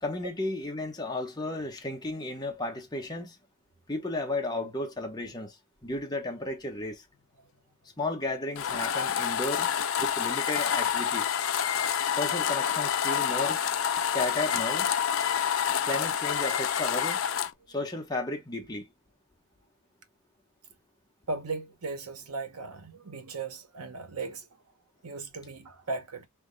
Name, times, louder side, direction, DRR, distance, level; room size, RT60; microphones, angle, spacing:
voice 1, 0.0-3.4 3.9-5.6 5.8-7.0 8.0-9.7 10.0-11.4 12.2-13.6 14.1-14.9 15.8-17.2 17.7-18.9, left 2 dB, 20° left, 1.0 m, -33 dB
sound 1, 8.6-17.5, left 8 dB, 60° left, 0.5 m, -28 dB
voice 2, 21.3-24.5 25.0-26.3, right 3 dB, 80° right, 1.0 m, -37 dB
3.6 x 2.9 x 3.7 m
head